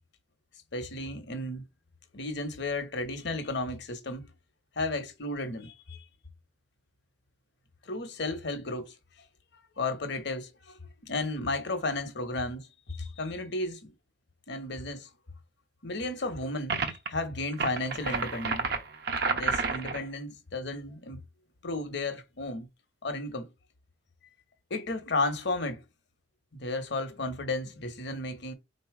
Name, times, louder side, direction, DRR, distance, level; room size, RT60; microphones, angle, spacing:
voice 1, 0.7-1.7 2.1-4.2 4.8-6.0 7.8-8.9 9.8-13.9 14.5-15.1 15.8-18.7 19.3-21.2 21.6-22.7 23.0-23.5 24.7-25.8 26.6-28.5, left 2 dB, 55° left, 1.0 m, -33 dB
sound 1, 16.7-17.1 17.5-20.0, right 4 dB, 55° right, 0.7 m, -30 dB
4.0 x 2.8 x 4.6 m
head